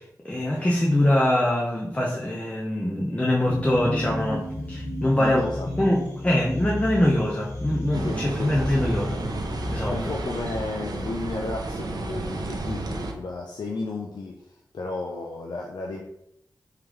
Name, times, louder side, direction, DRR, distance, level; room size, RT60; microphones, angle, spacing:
voice 1, 0.0-5.4 5.8-9.2 9.7-10.0, left 1 dB, 20° left, -3 dB, 0.7 m, -23 dB
sound 1, 3.5-12.0, left 1 dB, 40° left, 1.0 m, -34 dB
voice 2, 5.2-5.7 8.0-8.8 9.9-16.0, left 3 dB, 80° left, -1 dB, 0.5 m, -33 dB
sound 2, 7.9-13.1, right 2 dB, 65° right, 0.5 m, -32 dB
3.8 x 3.3 x 3.1 m, 0.75 s
wide cardioid pair, 70°, 7 cm